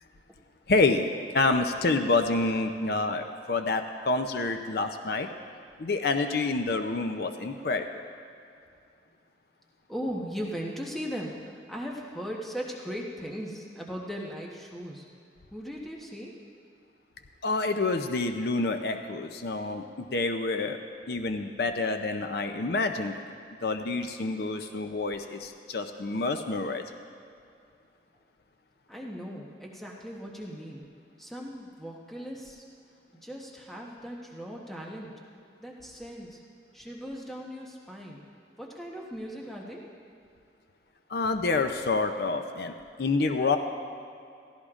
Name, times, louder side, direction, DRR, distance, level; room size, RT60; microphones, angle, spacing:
voice 1, 0.7-5.3 5.8-8.0 17.4-20.8 21.1-23.2 23.6-26.8 41.1-42.7 43.0-43.6, left 3 dB, 60° left, 6 dB, 0.5 m, -28 dB
voice 2, 9.9-15.0 15.5-16.3 28.9-30.8 31.2-32.6 33.1-35.1 35.6-36.4 36.7-38.2 38.6-39.8, equal, ahead, -3 dB, 1.0 m, -38 dB
16.5 x 15.0 x 2.5 m, 2.5 s
head